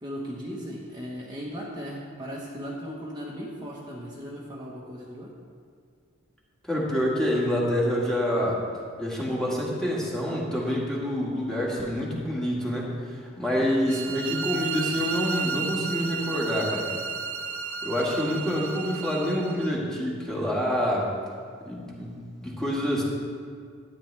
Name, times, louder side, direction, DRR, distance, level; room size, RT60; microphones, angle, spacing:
voice 1, 0.0-5.3 13.5-13.9, equal, 20° right, -6 dB, 1.2 m, -37 dB
voice 2, 6.6-8.6 9.0-16.9 17.8-21.1 21.7-23.0, equal, 5° left, -5 dB, 1.8 m, -27 dB
sound 1, 13.9-19.7, right 5 dB, 70° right, 0.7 m, -33 dB
12.5 x 9.5 x 3.4 m, 2.1 s
head